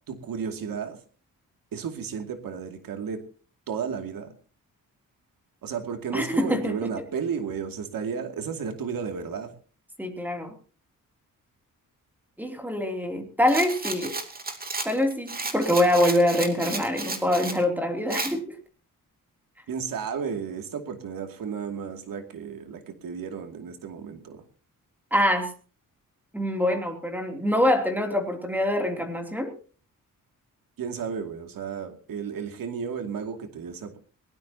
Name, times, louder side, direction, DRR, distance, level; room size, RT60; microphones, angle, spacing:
voice 1, 0.1-1.0 1.7-3.2 3.7-4.3 5.6-9.5 19.7-24.4 30.8-34.0, right 6 dB, 85° right, 5 dB, 2.5 m, -33 dB
voice 2, 6.1-6.8 10.0-10.5 12.4-14.2 14.8-18.6 25.1-25.5 26.3-29.5, left 1 dB, 5° right, 4 dB, 3.0 m, -24 dB
Rattle, 13.5-17.6 18.1-18.3, right 3 dB, 25° right, 2.7 m, -33 dB
21.5 x 19.0 x 2.9 m, 0.39 s
wide cardioid pair, 140°, 33 cm